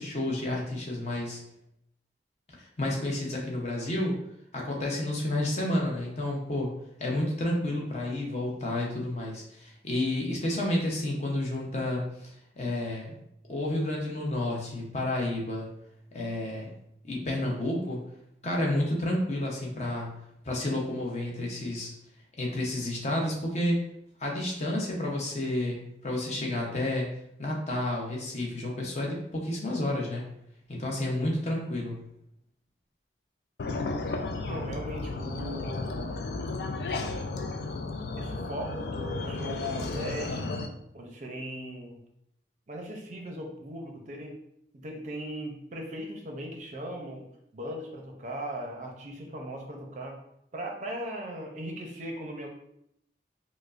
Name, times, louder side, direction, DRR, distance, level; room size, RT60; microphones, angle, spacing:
voice 1, 0.0-1.4 2.8-4.2 4.5-6.7 7.0-12.3 12.6-13.2 13.5-15.7 16.1-16.7 17.0-18.0 18.4-20.2 20.4-21.9 22.4-23.8 24.2-27.1 27.4-30.3 30.7-32.0, left 1 dB, 40° left, -2 dB, 0.7 m, -30 dB
sound 1, 33.6-40.7, left 3 dB, 60° left, 0.3 m, -33 dB
voice 2, 34.5-36.1 38.2-40.5 40.9-42.0 42.7-44.4 44.7-47.3 47.5-50.2 50.5-52.5, right 1 dB, 40° right, 1 dB, 0.5 m, -38 dB
4.8 x 2.0 x 2.4 m, 0.77 s
head